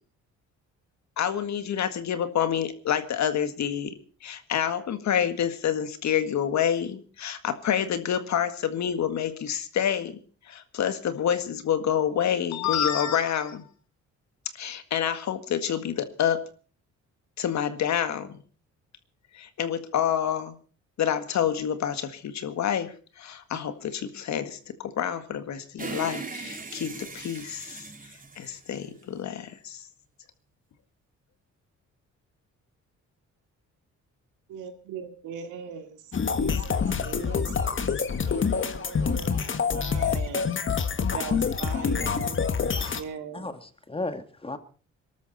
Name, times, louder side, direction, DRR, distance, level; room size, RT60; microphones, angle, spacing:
voice 1, 1.2-3.9 4.2-10.2 10.5-13.7 14.6-16.4 17.4-18.4 19.3-20.6 21.0-27.8 28.4-29.8, left 9 dB, 65° left, 1.9 m, -28 dB
sound 1, 25.8-29.3, right 4 dB, 25° right, 3.4 m, -39 dB
voice 2, 34.5-40.5 41.1-42.4 42.9-43.5, right 7 dB, 90° right, 2.7 m, -40 dB
sound 2, 36.1-43.0, left 6 dB, 40° left, 1.6 m, -26 dB
voice 3, 43.3-44.6, left 2 dB, 20° left, 1.8 m, -35 dB
23.0 x 12.5 x 4.2 m
cardioid pair, 90°, 30 cm